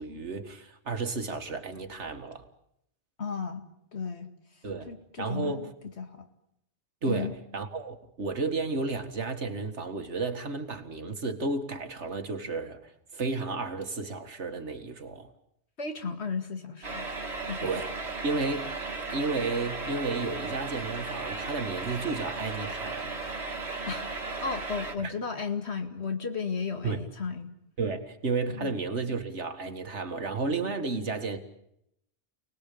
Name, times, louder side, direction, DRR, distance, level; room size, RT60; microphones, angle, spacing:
voice 1, 0.0-2.5 4.6-4.9 5.2-5.7 7.0-15.3 17.6-17.9 18.2-18.7 19.1-23.1 25.0-25.1 26.8-27.0 27.8-31.4, right 3 dB, 90° right, 2.3 m, -32 dB
voice 2, 3.2-3.6 3.9-4.3 4.9-5.7 6.0-6.3 7.1-7.3 15.8-17.1 17.4-17.8 23.9-27.5 28.5-28.7, left 5 dB, 75° left, 2.4 m, -34 dB
sound 1, 16.8-24.9, right 3 dB, 75° right, 2.2 m, -36 dB
28.5 x 19.5 x 8.6 m
omnidirectional pair, 1.1 m